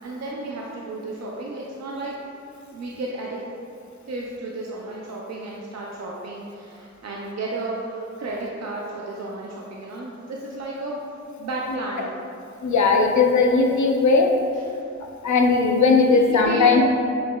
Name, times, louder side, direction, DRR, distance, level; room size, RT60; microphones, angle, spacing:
voice 1, 0.0-2.2 2.7-3.4 4.1-11.0 11.4-12.1 14.7-14.8 16.3-16.8, right 2 dB, 65° right, -3 dB, 0.5 m, -32 dB
voice 2, 12.6-14.3 15.2-16.8, left 4 dB, 75° left, 2 dB, 0.5 m, -18 dB
6.1 x 2.8 x 2.2 m, 2.5 s
wide cardioid pair, 65°, 29 cm